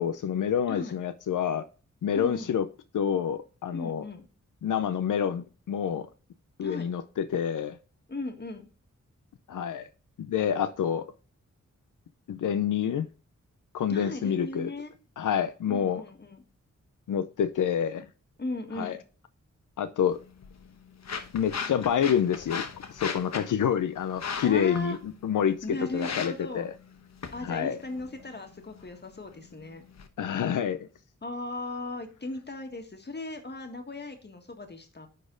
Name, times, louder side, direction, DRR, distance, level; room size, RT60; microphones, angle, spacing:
voice 1, 0.0-1.7 2.0-2.7 2.9-4.0 4.6-6.1 6.6-7.8 9.5-9.9 10.2-11.0 12.3-13.1 13.7-14.7 15.2-16.0 17.1-18.1 18.7-19.0 19.8-20.2 21.3-22.6 22.9-26.7 27.4-27.8 30.2-30.9, left 8 dB, 90° left, 0.5 m, -28 dB
voice 2, 2.1-2.5 3.7-4.3 6.6-6.9 8.1-8.6 13.9-14.9 15.7-16.4 18.4-19.0 24.4-25.0 25.6-26.6 27.3-29.8 31.2-35.1, left 2 dB, 35° left, 1.7 m, -37 dB
sound 1, 20.1-30.1, left 6 dB, 60° left, 1.0 m, -40 dB
10.0 x 4.2 x 3.8 m
wide cardioid pair, 100°, 30 cm